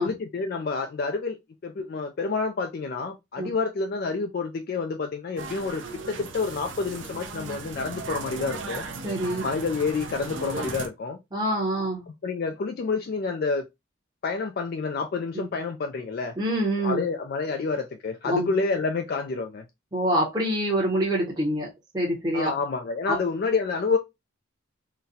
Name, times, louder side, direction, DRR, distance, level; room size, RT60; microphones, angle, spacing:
voice 1, 0.0-1.4 1.6-8.8 9.4-11.2 12.2-13.6 14.2-16.3 16.8-19.6 22.3-24.0, left 4 dB, 45° left, 0.3 m, -28 dB
sound 1, 5.4-10.9, right 3 dB, 60° right, 0.6 m, -36 dB
voice 2, 9.0-9.5 11.3-12.0 15.3-15.5 16.4-17.0 18.2-18.5 19.9-21.7 21.9-22.5 23.1-23.2, right 1 dB, 20° right, 0.8 m, -25 dB
3.8 x 2.1 x 2.7 m
head